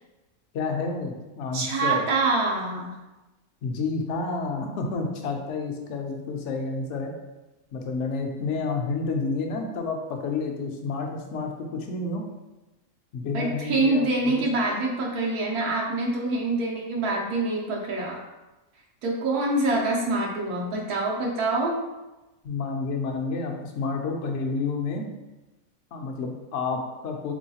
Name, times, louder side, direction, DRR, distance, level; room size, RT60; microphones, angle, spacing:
voice 1, 0.5-2.0 3.6-7.1 7.7-12.2 13.1-14.3 22.4-25.1 25.9-27.3, left 4 dB, 65° left, 3 dB, 0.7 m, -30 dB
voice 2, 1.5-3.0 13.3-18.2 19.0-21.8, right 2 dB, 90° right, -2 dB, 1.2 m, -25 dB
3.7 x 3.1 x 2.7 m, 1.1 s
omnidirectional pair, 1.6 m